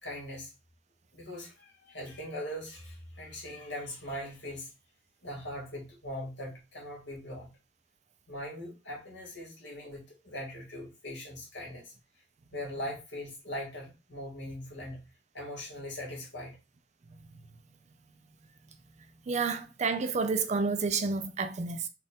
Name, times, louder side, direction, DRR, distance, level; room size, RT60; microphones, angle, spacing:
voice 1, 0.0-0.5 1.1-4.7 5.2-7.5 8.3-11.9 12.5-15.1 15.3-16.6, left 1 dB, 70° left, 1.9 m, -40 dB
voice 2, 19.3-21.9, right 4 dB, 40° right, 0.4 m, -30 dB
4.2 x 2.4 x 3.5 m
head